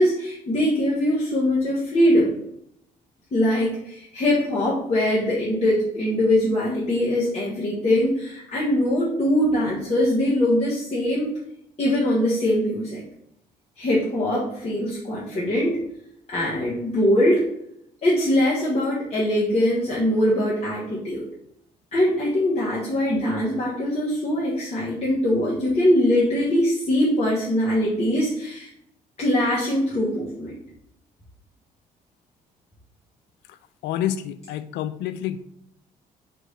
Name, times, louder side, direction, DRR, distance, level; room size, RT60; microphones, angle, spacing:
voice 1, 0.0-2.3 3.3-11.3 11.8-13.0 13.8-15.8 16.3-17.4 18.0-21.3 21.9-28.7 29.2-30.5, left 1 dB, 30° left, -7 dB, 1.3 m, -22 dB
voice 2, 33.8-35.4, left 11 dB, 60° left, 12 dB, 0.4 m, -28 dB
3.4 x 3.0 x 4.2 m, 0.75 s
hypercardioid pair, 50°, 20 cm